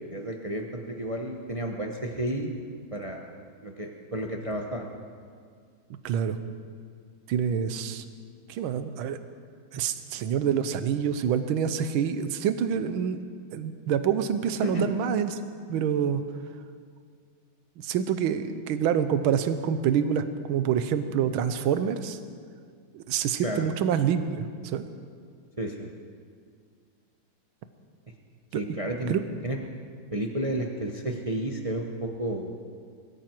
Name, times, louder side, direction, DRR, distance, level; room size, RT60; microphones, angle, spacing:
voice 1, 0.1-2.6 2.9-3.3 3.6-4.9 14.6-14.9 23.4-23.7 25.6-25.9 28.5-29.1 29.4-29.6 30.1-32.5, right 1 dB, 45° right, 2 dB, 0.4 m, -31 dB
voice 2, 6.0-6.4 7.3-8.0 8.5-9.2 9.7-13.2 13.5-15.4 15.7-16.2 17.8-22.2 22.9-24.8 28.5-28.6 29.1-29.2, right 8 dB, 75° right, 10 dB, 1.6 m, -27 dB
22.0 x 14.0 x 4.6 m, 2.1 s
omnidirectional pair, 2.4 m